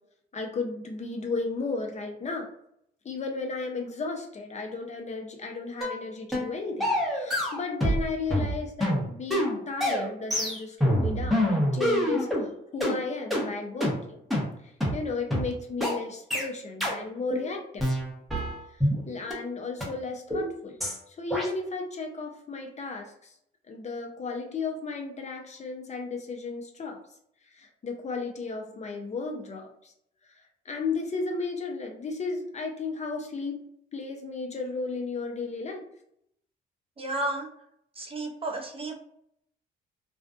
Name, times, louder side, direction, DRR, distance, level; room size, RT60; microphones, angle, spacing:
voice 1, 0.3-2.5 3.0-14.2 14.6-17.9 18.7-23.3 23.7-27.0 27.5-29.9 30.3-33.6 33.9-35.8, left 4 dB, 35° left, 3 dB, 0.5 m, -34 dB
sound 1, 5.8-6.0 6.3-6.5 6.8-8.0 8.3-12.4 12.8-12.9 13.3-13.4 13.8-13.9 14.3-14.4 14.8-14.9 15.3-15.4 15.8-15.9 16.3-16.5 16.8-17.0 17.3-17.5 17.8-19.0 19.3-19.4 19.8-19.9 20.3-20.5 20.8-21.0 21.3-21.5, equal, ahead, 0.8 m, -26 dB
voice 2, 37.0-37.5 38.0-39.0, right 2 dB, 30° right, 2 dB, 0.5 m, -32 dB
2.4 x 2.2 x 2.4 m, 0.72 s
cardioid pair, 90°, 20 cm